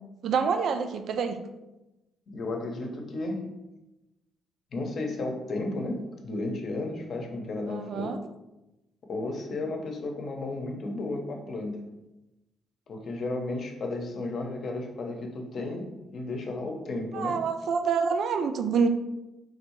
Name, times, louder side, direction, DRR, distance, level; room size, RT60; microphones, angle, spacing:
voice 1, 0.2-1.4 7.7-8.2 17.1-18.9, right 5 dB, 65° right, 7 dB, 0.4 m, -27 dB
voice 2, 2.3-3.5 4.7-8.1 9.1-11.8 12.9-17.4, left 2 dB, 50° left, 3 dB, 0.8 m, -33 dB
3.8 x 2.7 x 4.5 m, 0.98 s
cardioid pair, 120°, 0 cm